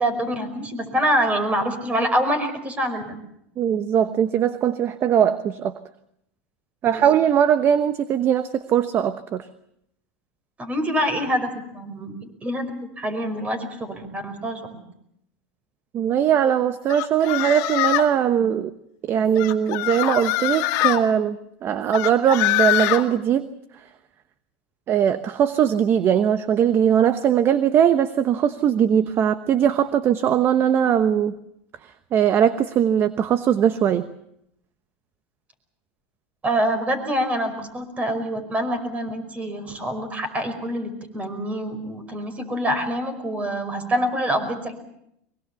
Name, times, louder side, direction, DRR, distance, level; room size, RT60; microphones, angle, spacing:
voice 1, 0.0-3.1 6.8-7.1 10.6-12.7 13.0-14.6 36.4-44.7, equal, 20° right, 10 dB, 5.2 m, -25 dB
voice 2, 3.6-5.7 6.8-9.5 15.9-18.7 19.0-21.4 21.6-23.5 24.9-31.3 32.1-34.1, right 9 dB, 35° right, 11 dB, 1.1 m, -20 dB
sound 1, 16.9-18.2 19.4-21.0 21.9-23.0, left 17 dB, 55° left, 2.2 m, -23 dB
23.0 x 23.0 x 7.1 m, 0.77 s
supercardioid pair, 120°, 7 cm